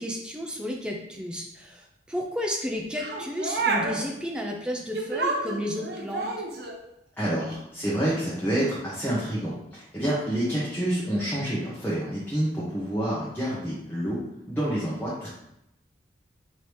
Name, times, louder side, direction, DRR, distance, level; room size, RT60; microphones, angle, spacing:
voice 1, 0.0-6.3, left 1 dB, 5° right, 0 dB, 0.5 m, -32 dB
sound 1, 3.0-4.0 4.9-6.8 7.4-7.6, right 3 dB, 60° right, 0.6 m, -29 dB
voice 2, 7.2-14.2 14.5-15.3, right 1 dB, 10° left, -8 dB, 0.8 m, -28 dB
3.3 x 2.8 x 4.5 m, 0.82 s
head